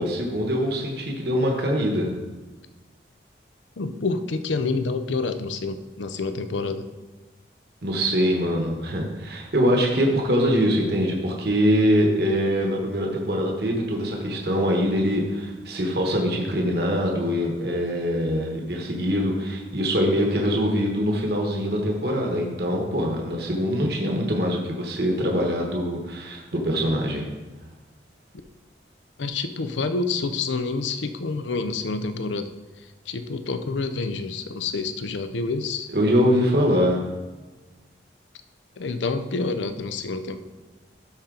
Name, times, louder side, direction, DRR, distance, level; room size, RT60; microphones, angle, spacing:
voice 1, 0.0-2.1 7.8-27.3 35.9-37.0, equal, 60° right, 0 dB, 1.2 m, -23 dB
voice 2, 3.8-6.9 29.2-32.5 33.1-35.9 38.8-40.4, left 3 dB, 85° left, 10 dB, 0.6 m, -28 dB
13.0 x 4.4 x 3.8 m, 1.2 s
head